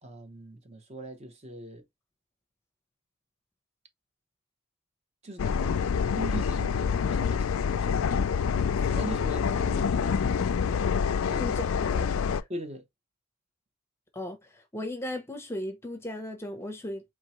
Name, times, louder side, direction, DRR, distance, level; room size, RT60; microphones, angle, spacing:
voice 1, 0.0-1.9 5.2-5.8 6.1-8.0 8.7-10.8 11.3-11.5 12.5-12.9, right 1 dB, 30° right, 0.8 m, -41 dB
sound 1, 5.4-12.4, left 6 dB, 70° left, 0.4 m, -27 dB
voice 2, 11.4-12.5 14.1-17.0, left 1 dB, 10° left, 0.7 m, -37 dB
4.5 x 3.0 x 3.0 m
head